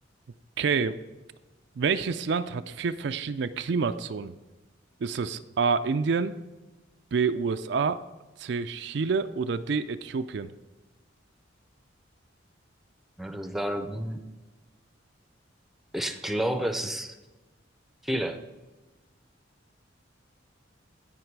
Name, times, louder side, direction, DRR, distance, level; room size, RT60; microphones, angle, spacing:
voice 1, 0.6-1.0 1.8-4.4 5.0-6.4 7.1-8.0 8.4-10.5, right 5 dB, 60° right, 10 dB, 0.4 m, -28 dB
voice 2, 13.2-14.2 15.9-17.1 18.0-18.4, right 1 dB, ahead, 7 dB, 0.6 m, -30 dB
16.5 x 5.8 x 4.7 m, 1.1 s
head